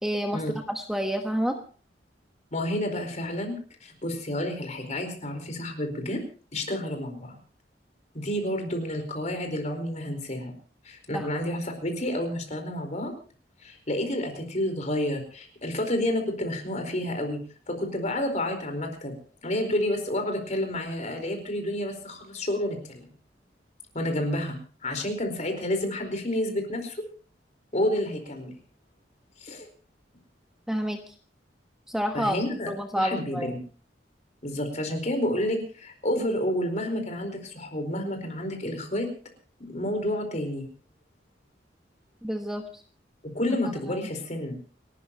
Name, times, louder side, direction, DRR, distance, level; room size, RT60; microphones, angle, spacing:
voice 1, 0.0-1.6 11.1-11.3 30.7-31.0 31.9-32.3 32.7-33.5 42.2-42.6 43.9-44.1, equal, 5° right, 4 dB, 1.3 m, -29 dB
voice 2, 2.5-3.5 3.8-6.2 6.5-7.3 8.1-10.5 10.8-13.1 13.6-17.4 17.7-19.1 19.4-23.1 23.9-24.6 24.8-27.0 27.7-28.5 29.4-29.7 32.1-32.7 32.9-33.6 34.4-39.1 39.7-40.7 43.2-44.7, left 1 dB, 40° left, 5 dB, 4.5 m, -30 dB
29.5 x 12.5 x 3.0 m, 0.39 s
head